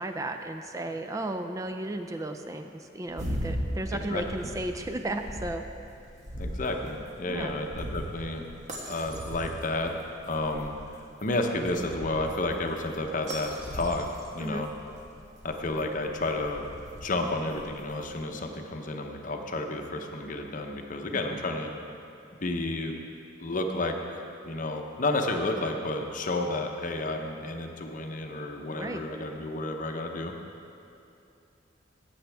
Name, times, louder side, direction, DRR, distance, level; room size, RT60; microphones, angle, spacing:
voice 1, 0.0-5.6 7.3-7.6 14.4-14.6 21.1-21.2 28.7-29.1, right 1 dB, 15° right, 6 dB, 0.3 m, -34 dB
sound 1, 3.1-18.2, equal, 40° right, 1.4 m, -39 dB
voice 2, 3.9-4.2 6.4-8.4 8.8-14.1 14.3-14.7 15.4-16.7 17.0-21.7 22.4-23.0 23.4-30.3, left 2 dB, 45° left, 4 dB, 0.8 m, -31 dB
14.5 x 8.7 x 3.4 m, 2.7 s
head